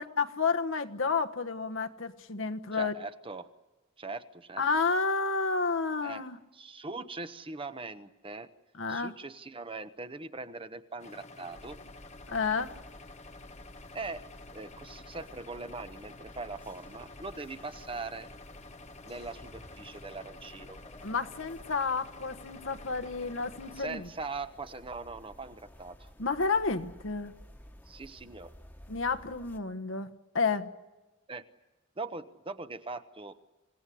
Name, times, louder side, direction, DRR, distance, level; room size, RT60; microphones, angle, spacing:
voice 1, 0.0-2.9 4.6-6.4 8.8-9.1 12.3-12.8 21.0-24.0 26.2-27.3 28.9-30.7, left 4 dB, 70° left, 8 dB, 1.3 m, -30 dB
voice 2, 2.7-3.5 4.0-4.6 6.0-6.2 6.5-8.5 8.9-11.8 13.9-14.2 14.5-18.3 19.0-20.8 23.7-26.1 27.9-28.5 31.3-31.5 32.0-33.4, right 3 dB, 25° right, 10 dB, 1.1 m, -41 dB
sound 1, 11.0-23.8, left 3 dB, 35° left, 1.5 m, -50 dB
sound 2, 11.5-29.6, equal, 10° left, 1.5 m, -53 dB
27.0 x 17.0 x 10.0 m, 1.2 s
head